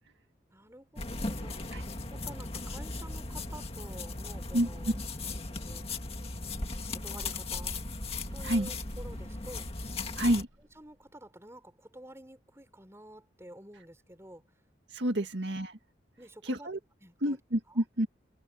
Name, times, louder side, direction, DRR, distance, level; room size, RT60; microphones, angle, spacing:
voice 1, 0.5-1.8 2.1-5.0 5.2-5.9 6.9-7.8 8.3-9.8 10.7-14.4 16.2-16.7 17.0-17.4 17.7-17.8, right 1 dB, 15° right, 5.4 m, -50 dB
sound 1, 1.0-10.4, left 3 dB, 30° left, 2.0 m, -37 dB
sound 2, 7.8-11.0, equal, 85° right, 4.4 m, -51 dB
voice 2, 10.1-10.5 14.9-15.7 16.4-16.8 17.2-18.1, right 1 dB, 70° right, 1.9 m, -29 dB
head